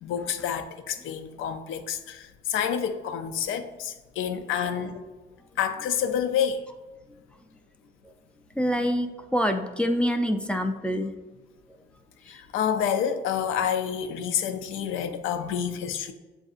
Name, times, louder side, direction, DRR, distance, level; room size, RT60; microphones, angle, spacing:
voice 1, 0.0-5.0 5.6-6.6 12.2-16.1, left 8 dB, 85° left, 8 dB, 0.5 m, -28 dB
voice 2, 4.2-4.6 8.6-11.1, equal, 5° left, 5 dB, 0.4 m, -26 dB
7.5 x 2.7 x 2.4 m, 1.2 s
cardioid pair, 90°, 20 cm